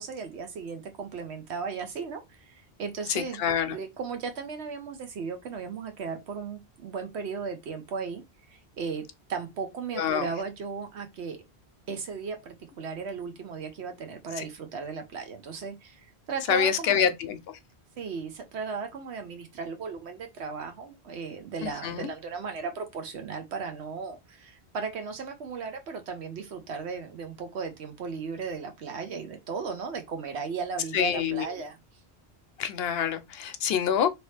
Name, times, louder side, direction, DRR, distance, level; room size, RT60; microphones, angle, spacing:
voice 1, 0.0-3.4 3.7-8.2 8.5-11.4 11.9-17.1 18.0-31.8, right 5 dB, 80° right, 1.1 m, -36 dB
voice 2, 3.1-3.8 10.0-10.3 14.4-14.5 16.5-17.4 21.6-22.1 30.9-31.5 32.6-34.1, left 8 dB, 70° left, 0.8 m, -26 dB
2.9 x 2.9 x 3.2 m
omnidirectional pair, 1.1 m